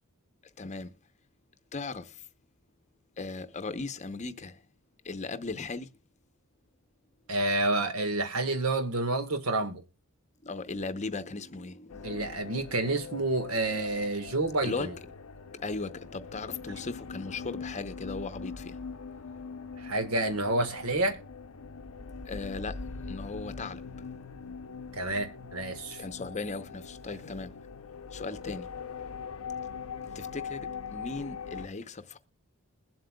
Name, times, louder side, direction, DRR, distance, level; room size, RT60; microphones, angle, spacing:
voice 1, 0.6-0.9 1.7-2.2 3.2-4.6 5.0-5.9 10.4-12.6 14.6-14.9 15.5-18.9 19.4-19.5 22.3-22.8 23.1-23.9 26.0-27.6 28.1-28.7 30.1-32.2, left 3 dB, 35° left, 0.7 m, -37 dB
voice 2, 7.3-9.8 12.0-14.9 19.8-21.2 24.9-26.0, right 2 dB, 85° right, 1.5 m, -29 dB
sound 1, 11.9-31.7, left 5 dB, 75° left, 0.7 m, -42 dB
21.5 x 7.7 x 2.3 m
head